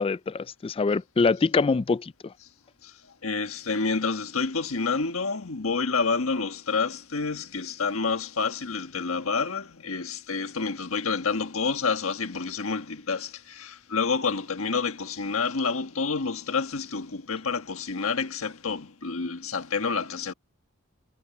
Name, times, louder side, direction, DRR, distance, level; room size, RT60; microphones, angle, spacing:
voice 1, 0.0-2.3, left 4 dB, 25° left, 0.3 m, -24 dB
voice 2, 3.2-20.3, left 4 dB, 80° left, 1.5 m, -28 dB
head